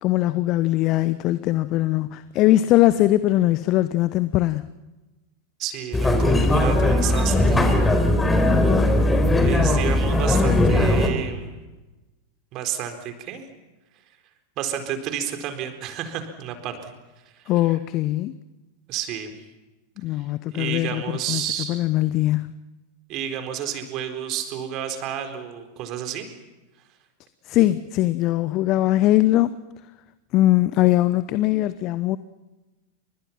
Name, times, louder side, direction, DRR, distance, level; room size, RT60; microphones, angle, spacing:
voice 1, 0.0-4.7 9.3-10.8 17.5-18.4 20.0-21.4 21.7-22.5 27.5-29.5 30.3-32.2, left 15 dB, 40° left, 14 dB, 0.9 m, -21 dB
voice 2, 5.6-7.8 8.5-8.6 9.4-11.5 12.5-13.4 14.6-16.9 17.3-17.8 18.9-19.3 20.2-21.8 23.1-26.3, right 9 dB, 40° right, 7 dB, 4.1 m, -31 dB
sound 1, 5.9-11.1, left 1 dB, 10° left, 4.4 m, -19 dB
29.5 x 26.5 x 5.9 m, 1.1 s
figure-of-eight pair, 90°, 0 cm